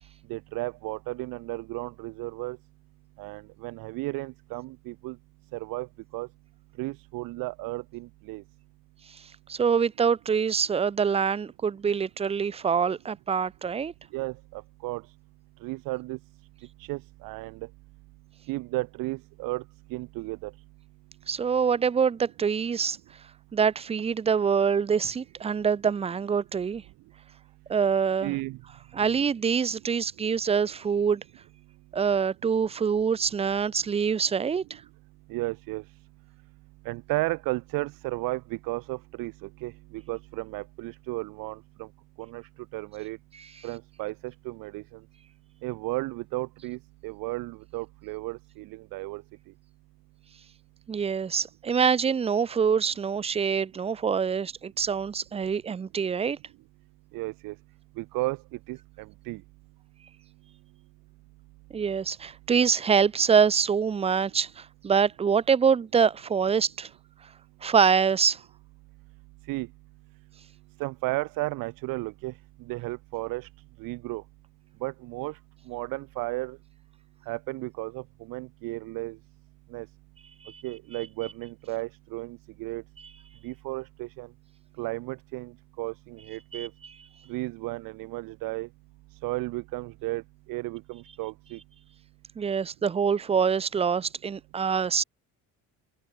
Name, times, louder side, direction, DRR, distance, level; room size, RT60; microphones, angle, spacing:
voice 1, 0.3-2.6 3.2-5.2 5.5-5.9 6.1-6.3 6.8-8.4 14.1-15.0 15.6-16.2 16.8-17.6 18.5-19.6 19.9-20.5 28.2-28.6 29.0-29.2 35.3-35.8 36.8-41.9 42.2-42.4 42.7-43.2 43.6-44.8 45.6-49.2 57.1-57.5 58.0-58.4 58.7-59.4 69.5-69.7 70.8-72.3 72.7-73.5 73.8-74.2 74.8-75.4 75.7-76.6 77.3-79.2 79.7-79.9 80.6-82.8 83.4-84.3 84.8-85.5 85.8-86.7 87.3-88.7 89.2-90.2 90.5-91.6, right 21 dB, 75° right, 1.2 m, -34 dB
voice 2, 9.5-13.9 21.3-23.0 23.5-26.8 27.7-28.3 28.9-31.2 31.9-34.8 50.9-56.4 61.7-66.9 67.6-68.4 80.4-80.6 86.5-86.7 92.4-95.0, right 6 dB, 15° right, 0.8 m, -25 dB
open air
cardioid pair, 180°, 34 cm